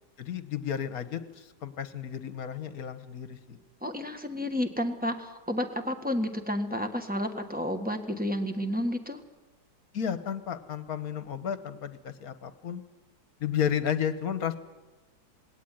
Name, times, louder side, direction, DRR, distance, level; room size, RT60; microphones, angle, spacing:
voice 1, 0.2-3.6 9.9-12.8 13.4-14.6, left 8 dB, 60° left, 11 dB, 1.6 m, -32 dB
voice 2, 3.8-9.2, left 1 dB, 5° right, 6 dB, 1.5 m, -31 dB
20.0 x 17.5 x 9.4 m, 1.2 s
omnidirectional pair, 1.8 m